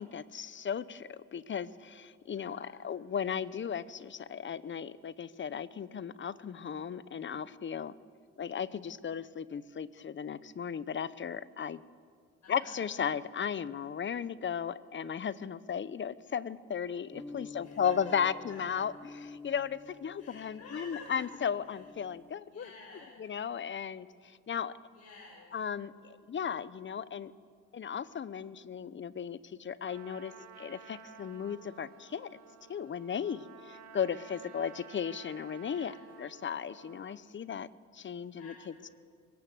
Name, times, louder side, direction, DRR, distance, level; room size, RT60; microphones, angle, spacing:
voice 1, 0.0-7.9 8.4-11.8 12.5-18.9 19.2-22.7 23.2-24.7 25.5-27.3 27.7-32.4 32.7-35.9 36.2-37.7 37.9-38.5, left 7 dB, 40° left, 17 dB, 0.8 m, -36 dB
voice 2, 2.3-2.8 12.4-12.9 17.6-18.1 18.5-18.7 20.2-21.2 21.5-21.9 22.4-23.2 24.9-25.5 34.2-34.7 35.5-36.0 38.4-38.9, left 4 dB, 65° left, -5 dB, 6.3 m, -51 dB
sound 1, 17.1-22.3, left 4 dB, 10° left, 0.8 m, -50 dB
Trumpet, 29.8-37.2, right 6 dB, 65° right, 1.9 m, -53 dB
22.0 x 18.5 x 8.0 m, 2.1 s
cardioid pair, 90°, 30 cm